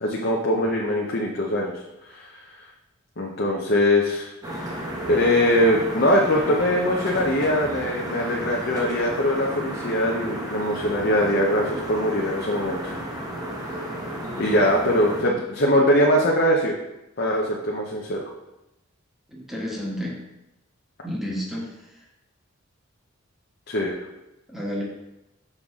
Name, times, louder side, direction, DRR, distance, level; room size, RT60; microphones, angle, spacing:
voice 1, 0.0-2.3 3.2-4.3 5.1-13.0 14.4-16.7 17.2-18.2 23.7-23.9, left 1 dB, 50° left, -2 dB, 0.8 m, -22 dB
sound 1, 4.4-15.2, right 1 dB, 20° right, 1.1 m, -33 dB
voice 2, 19.3-20.1 21.0-21.7 24.5-24.8, equal, ahead, -4 dB, 1.3 m, -31 dB
6.5 x 5.7 x 3.7 m, 0.93 s
head